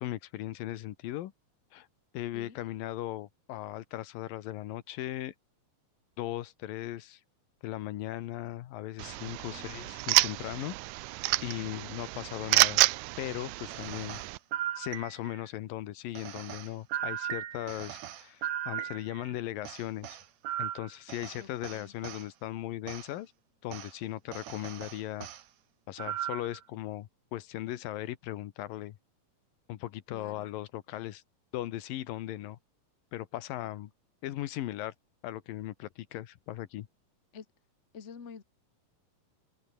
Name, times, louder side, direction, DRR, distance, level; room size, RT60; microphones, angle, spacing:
voice 1, 0.0-1.3 1.7-1.9 2.1-5.3 6.2-7.2 7.6-10.7 11.4-12.8 13.2-14.2 14.8-20.2 20.6-23.3 23.6-25.3 25.9-29.0 29.7-31.2 31.5-32.6 33.1-33.9 34.2-34.9 35.2-36.9, left 14 dB, 90° left, 3.0 m, -38 dB
sound 1, 9.0-14.4, right 19 dB, 80° right, 1.8 m, -29 dB
voice 2, 9.5-9.8 11.6-11.9 21.4-21.9 30.1-30.5 37.3-37.4 37.9-38.4, left 6 dB, 30° left, 1.4 m, -48 dB
sound 2, 13.7-15.5 16.1-19.3 19.6-22.3 22.9-23.1 23.7-23.9 24.3-25.4 26.0-26.6, right 11 dB, 60° right, 2.3 m, -38 dB
open air
omnidirectional pair, 3.9 m